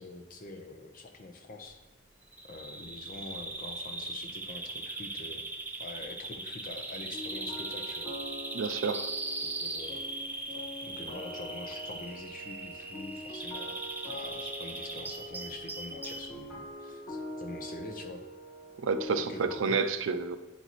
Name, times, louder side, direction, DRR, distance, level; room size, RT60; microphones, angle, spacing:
voice 1, 0.0-1.8 2.4-5.4 5.8-8.1 9.4-10.0 10.8-13.8 14.1-18.2 19.2-19.8, left 2 dB, 45° left, 4 dB, 0.8 m, -45 dB
Bird vocalization bird call bird song, 2.3-16.3, right 2 dB, 10° right, 0.5 m, -39 dB
sound 1, 7.1-19.6, left 1 dB, 85° left, 1.7 m, -44 dB
voice 2, 8.5-9.1 18.8-20.4, right 4 dB, 90° right, 11 dB, 0.4 m, -29 dB
8.8 x 4.1 x 3.0 m, 1.1 s
head